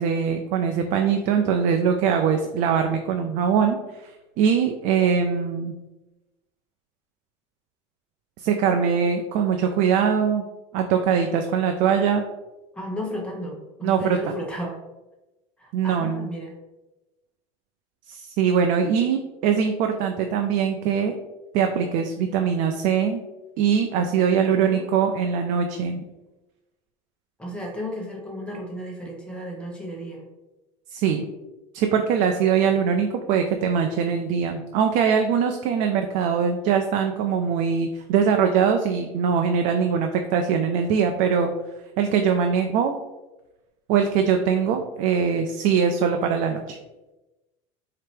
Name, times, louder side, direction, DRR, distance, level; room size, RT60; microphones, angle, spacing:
voice 1, 0.0-5.7 8.4-10.4 10.7-12.2 13.8-14.2 15.7-16.3 18.1-21.1 21.5-23.2 23.6-26.0 30.9-31.3 31.7-41.5 42.0-42.9 43.9-46.8, right 7 dB, 55° right, 5 dB, 0.4 m, -22 dB
voice 2, 12.7-14.8 15.6-16.5 24.4-24.8 27.4-30.2, equal, 5° left, -2 dB, 1.1 m, -34 dB
4.3 x 2.8 x 3.3 m, 1.0 s
supercardioid pair, 120°, 16 cm